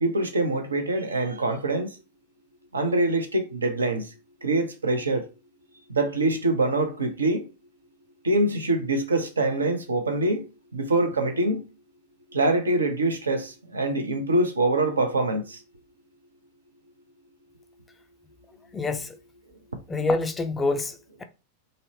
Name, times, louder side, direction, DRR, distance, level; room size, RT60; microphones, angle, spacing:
voice 1, 0.0-1.9 2.7-4.1 4.4-5.3 5.9-7.4 8.2-10.4 10.7-11.6 12.3-15.6, right 2 dB, 75° right, 0.5 m, -24 dB
voice 2, 18.7-19.2 19.9-21.2, left 3 dB, 15° left, 0.3 m, -27 dB
2.5 x 2.0 x 2.6 m
figure-of-eight pair, 90°, 0 cm